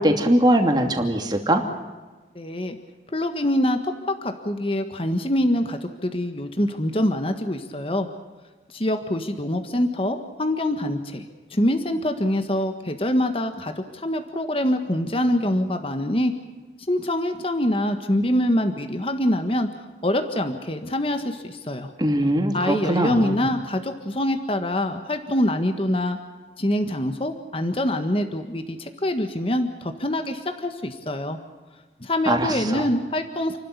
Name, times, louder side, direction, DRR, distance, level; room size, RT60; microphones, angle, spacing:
voice 1, 0.0-1.6 22.0-23.4 32.3-32.9, right 1 dB, 25° right, 4 dB, 2.7 m, -21 dB
voice 2, 2.3-2.8 3.1-8.1 8.7-16.3 16.9-19.7 20.0-21.9 22.5-26.2 26.6-31.4 32.0-33.6, left 1 dB, 30° left, 7 dB, 1.5 m, -25 dB
29.0 x 12.5 x 9.9 m, 1.2 s
head